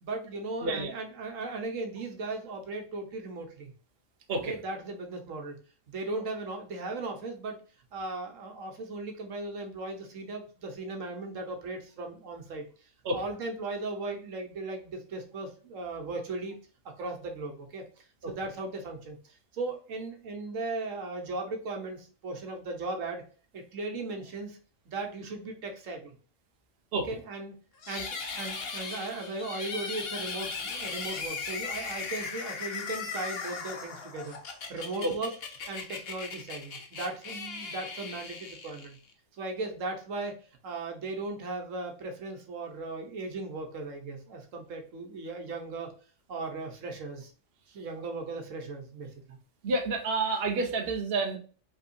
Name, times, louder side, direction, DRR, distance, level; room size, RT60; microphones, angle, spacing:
voice 1, 0.0-3.7 4.5-5.6 5.9-7.6 7.9-16.5 16.8-19.2 19.5-23.2 23.5-24.6 24.9-26.1 26.9-27.5 27.9-34.4 34.7-35.3 35.7-39.0 39.3-45.9 46.3-47.3 47.7-49.4, right 2 dB, 85° right, 3 dB, 1.4 m, -37 dB
voice 2, 0.6-0.9 4.3-4.5 13.0-13.2 18.2-18.3 26.9-27.1 35.0-35.1 49.6-51.4, right 3 dB, 55° right, 3 dB, 1.1 m, -29 dB
sound 1, 27.8-39.1, left 4 dB, 55° left, 1.0 m, -38 dB
5.5 x 3.5 x 2.7 m, 0.39 s
omnidirectional pair, 1.3 m